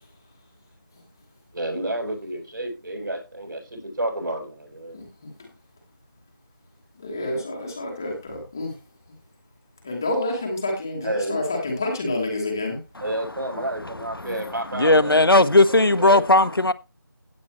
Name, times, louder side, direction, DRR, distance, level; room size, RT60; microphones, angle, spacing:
voice 1, 1.5-5.0 11.0-11.4 13.0-15.2 15.7-16.5, right 1 dB, 65° right, 7.7 m, -30 dB
voice 2, 7.0-8.7 9.8-12.8, left 2 dB, 10° left, 1.2 m, -28 dB
voice 3, 14.7-16.7, left 2 dB, 85° left, 1.3 m, -17 dB
16.5 x 8.7 x 3.1 m
figure-of-eight pair, 175°, 12 cm